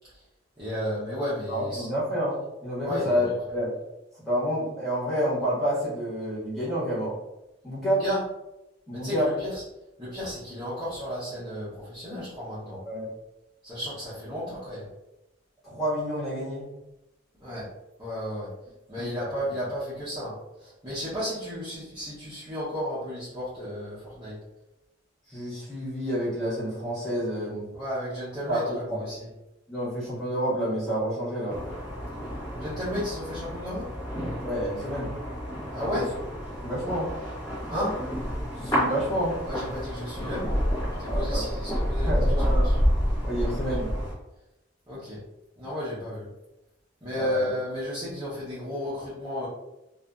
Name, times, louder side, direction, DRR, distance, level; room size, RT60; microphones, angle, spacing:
voice 1, 0.6-1.9 2.8-3.3 7.8-8.2 8.9-9.6 10.0-12.8 13.6-14.9 17.4-17.7 18.0-18.5 18.9-20.3 20.6-24.3 27.7-29.3 32.6-33.9 35.7-36.1 37.6-38.0 39.4-40.6 41.0-42.8 44.9-45.2 45.6-46.3 47.0-49.5, left 1 dB, 25° right, -12 dB, 0.8 m, -33 dB
voice 2, 1.5-3.7 4.2-7.2 7.6-8.0 8.9-9.3 12.8-13.1 15.6-16.7 19.0-19.1 25.3-27.7 28.5-29.0 29.7-31.6 34.4-35.1 35.8-36.0 36.6-37.1 38.6-39.4 41.0-41.4 42.0-42.7 43.2-43.9 47.1-47.5, equal, ahead, -10 dB, 1.2 m, -29 dB
sound 1, 31.5-44.1, equal, 20° left, 0.9 m, -29 dB
2.5 x 2.5 x 2.2 m, 0.93 s
head